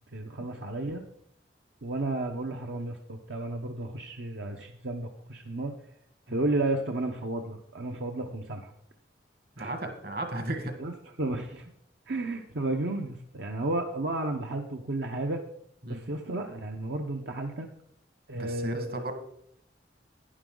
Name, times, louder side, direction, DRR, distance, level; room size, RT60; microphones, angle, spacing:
voice 1, 0.1-1.0 1.8-5.7 6.3-8.7 9.6-9.7 10.8-10.9 11.2-11.7 12.1-15.4 15.9-17.7 18.3-19.1, right 2 dB, 80° right, 3 dB, 0.9 m, -32 dB
voice 2, 9.6-10.7 15.8-16.0 18.3-19.1, right 1 dB, 60° right, 6 dB, 1.7 m, -34 dB
11.0 x 10.0 x 3.9 m, 0.69 s
head